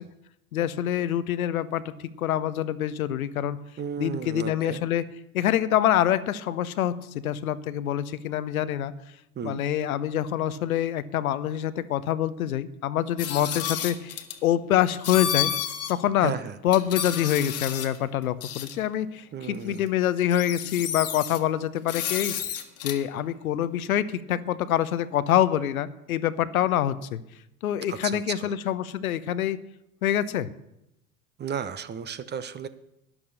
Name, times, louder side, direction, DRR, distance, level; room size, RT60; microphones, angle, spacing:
voice 1, 0.5-3.6 4.0-5.1 5.3-8.9 9.4-15.5 15.9-16.3 16.6-27.2 27.6-29.6 30.0-30.5, left 11 dB, 70° left, 14 dB, 0.9 m, -26 dB
voice 2, 3.8-4.8 9.3-9.6 16.2-16.6 19.3-19.8 27.9-28.5 31.4-32.7, right 7 dB, 25° right, 14 dB, 0.8 m, -34 dB
sound 1, 13.2-14.4 15.0-15.9 16.3-16.4 16.7-18.0 18.4-18.7 19.8-19.9 20.2-21.4 21.9-23.0, left 10 dB, 35° left, 1.6 m, -31 dB
12.0 x 10.5 x 6.5 m, 0.84 s
figure-of-eight pair, 80°, 44 cm